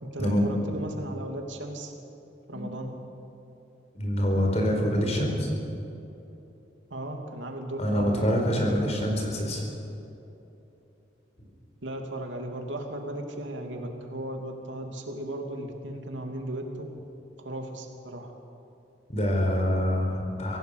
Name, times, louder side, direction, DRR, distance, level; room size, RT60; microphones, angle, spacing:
voice 1, 0.0-1.9 2.5-2.9 6.9-8.4 11.8-16.9 17.4-18.3, right 1 dB, 90° right, 3 dB, 2.8 m, -36 dB
voice 2, 3.9-5.5 7.8-9.6 19.1-20.6, equal, 35° left, 1 dB, 4.6 m, -25 dB
24.5 x 17.0 x 6.7 m, 3.0 s
head